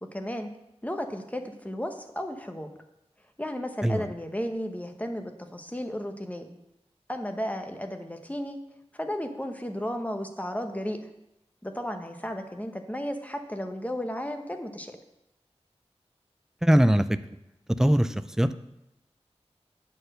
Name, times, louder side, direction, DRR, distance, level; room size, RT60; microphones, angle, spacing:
voice 1, 0.0-0.5 0.8-2.7 3.4-6.5 7.1-8.6 8.9-11.0 11.6-15.0, equal, 15° left, 6 dB, 0.9 m, -34 dB
voice 2, 16.6-17.2 17.7-18.6, equal, 5° right, 12 dB, 0.4 m, -21 dB
8.6 x 4.5 x 6.4 m, 0.86 s
wide cardioid pair, 60°, 11 cm